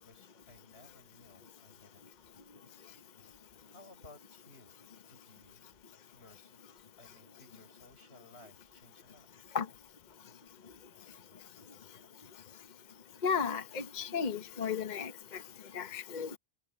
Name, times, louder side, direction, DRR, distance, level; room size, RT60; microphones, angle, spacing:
voice 1, 0.0-2.2 3.6-5.7 6.1-6.6 7.0-9.3, left 2 dB, 90° left, 6.5 m, -59 dB
voice 2, 13.2-15.1 15.7-16.3, left 6 dB, 45° left, 1.0 m, -33 dB
omnidirectional pair, 1.1 m